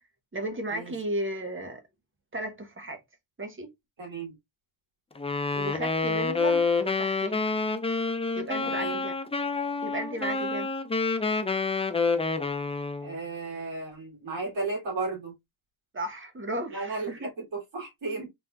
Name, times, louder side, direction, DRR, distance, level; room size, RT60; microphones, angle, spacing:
voice 1, 0.3-1.8 2.3-3.0 3.4-3.7 5.5-7.4 8.3-9.1 9.8-10.7 15.9-17.3, right 1 dB, 25° right, 1.0 m, -34 dB
voice 2, 4.0-4.3 8.6-9.0 13.0-15.3 16.7-18.3, right 3 dB, 75° right, 2.4 m, -34 dB
Wind instrument woodwind instrument, 5.2-13.1, left 4 dB, 15° left, 0.4 m, -28 dB
4.0 x 3.3 x 2.3 m
wide cardioid pair, 100°, 46 cm